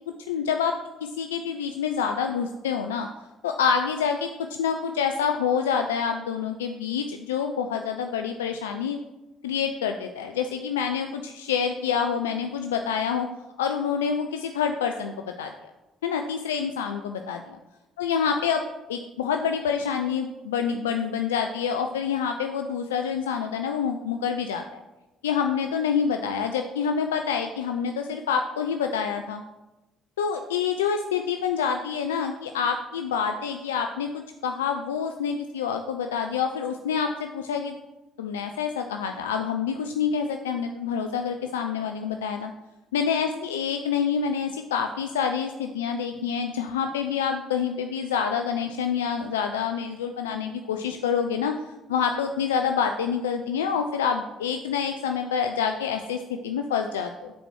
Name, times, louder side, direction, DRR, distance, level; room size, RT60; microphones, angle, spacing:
voice 1, 0.3-0.7 1.0-3.1 3.4-9.0 9.4-13.3 13.6-15.5 16.0-17.6 18.0-18.6 18.9-24.8 25.2-29.4 30.2-37.8 38.2-42.5 42.9-51.5 51.9-57.3, left 7 dB, 85° left, 5 dB, 0.3 m, -27 dB
5.2 x 4.5 x 6.1 m, 1.0 s
hypercardioid pair, 55°, 0 cm